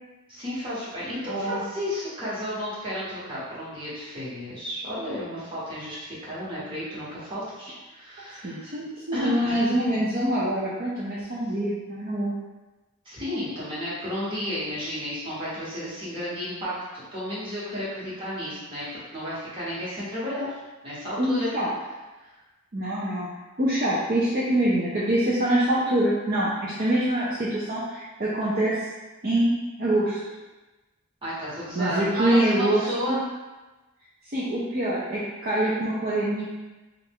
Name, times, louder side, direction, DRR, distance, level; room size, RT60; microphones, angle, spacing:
voice 1, 0.3-8.8 9.1-9.7 13.0-18.8 19.1-20.5 20.8-21.5 22.2-22.3 31.2-33.2, left 1 dB, 25° right, -9 dB, 1.2 m, -32 dB
voice 2, 1.3-1.6 8.4-12.3 21.2-21.7 22.7-23.3 23.6-28.9 29.2-30.2 31.7-33.2 34.3-36.5, right 1 dB, 40° right, -8 dB, 0.5 m, -25 dB
3.3 x 2.4 x 3.5 m, 1.1 s
head